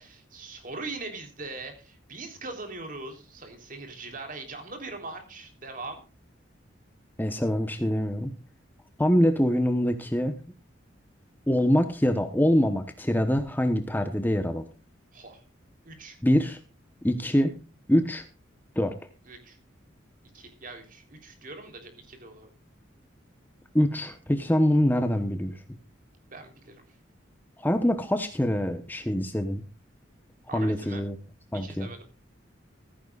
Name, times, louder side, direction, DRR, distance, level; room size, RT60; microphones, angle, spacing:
voice 1, 0.0-6.0 15.1-15.4 15.9-16.2 19.3-19.6 20.3-22.5 26.3-27.0 30.5-31.0 31.5-32.1, right 3 dB, 45° right, 5 dB, 3.6 m, -41 dB
voice 2, 7.2-8.3 9.0-10.3 11.5-14.6 16.2-16.6 17.0-17.6 17.9-18.2 18.8-19.0 23.7-25.6 27.6-29.6 30.5-31.2 31.5-31.9, equal, 10° left, 7 dB, 1.0 m, -24 dB
15.0 x 15.0 x 2.4 m, 0.34 s
head